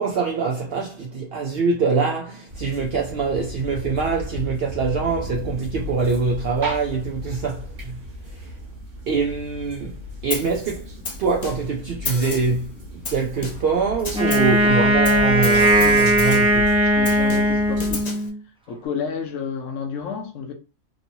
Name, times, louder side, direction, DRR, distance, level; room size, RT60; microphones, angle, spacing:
voice 1, 0.0-8.0 8.3-8.4 9.1-10.0 10.2-10.9 11.2-12.7 13.1-16.7, right 4 dB, 65° right, 0.6 m, -24 dB
sound 1, 2.5-18.0, left 1 dB, 40° right, 1.1 m, -35 dB
Snare drum, 10.3-10.6 11.0-11.8 12.0-12.6 13.0-13.8 14.0-14.6 15.0-16.6 17.0-18.3, left 4 dB, 50° left, 0.4 m, -32 dB
Wind instrument woodwind instrument, 14.1-18.4, right 1 dB, 10° right, 0.3 m, -18 dB
voice 2, 15.8-16.5 16.8-18.1 18.7-20.5, left 6 dB, 70° left, 0.9 m, -31 dB
3.0 x 2.7 x 2.7 m
omnidirectional pair, 1.5 m